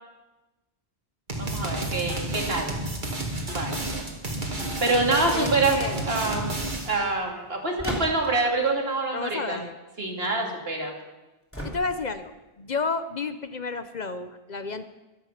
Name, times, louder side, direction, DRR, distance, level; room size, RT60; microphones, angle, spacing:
sound 1, 1.3-7.0, right 2 dB, 50° right, 2.4 m, -31 dB
voice 1, 1.4-2.8 3.5-4.0 4.8-6.5 6.8-9.6 10.0-10.9, right 2 dB, 70° right, 1 dB, 2.7 m, -26 dB
voice 2, 5.3-6.0 9.1-9.7 11.6-14.8, left 4 dB, 50° left, 11 dB, 0.8 m, -31 dB
sound 2, 7.8-8.5 11.5-12.2, equal, 10° left, 3.1 m, -34 dB
23.0 x 8.2 x 5.9 m, 1.1 s
omnidirectional pair, 1.0 m